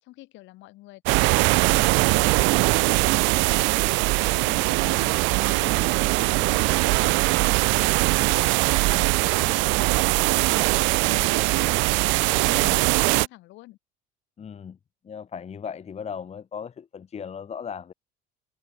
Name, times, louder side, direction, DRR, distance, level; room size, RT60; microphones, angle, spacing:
voice 1, 0.0-3.7 4.1-5.9 6.3-8.0 8.3-13.8, left 18 dB, 70° left, 5.3 m, -46 dB
sound 1, 1.1-13.3, right 25 dB, 70° right, 0.5 m, -21 dB
voice 2, 12.3-12.8 14.4-14.8 15.1-17.9, left 7 dB, 30° left, 1.1 m, -37 dB
supercardioid pair, 80°, 20 cm